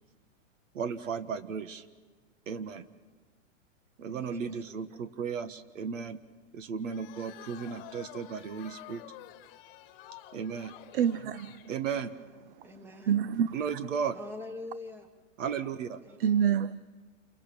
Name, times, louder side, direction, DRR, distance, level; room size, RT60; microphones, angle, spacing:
voice 1, 0.7-1.8 2.5-2.8 4.0-6.2 6.5-9.0 10.3-10.7 11.7-12.1 13.5-14.2 15.4-16.0, right 6 dB, 85° right, 1.7 m, -35 dB
voice 2, 4.1-4.5 12.6-13.2 14.1-15.1 16.0-16.5, left 2 dB, 5° right, 1.5 m, -44 dB
sound 1, 6.9-11.7, left 13 dB, 30° left, 1.6 m, -49 dB
voice 3, 10.9-11.7 13.1-13.8 16.2-16.8, right 9 dB, 50° right, 0.7 m, -27 dB
28.5 x 23.5 x 7.0 m
supercardioid pair, 160°, 37 cm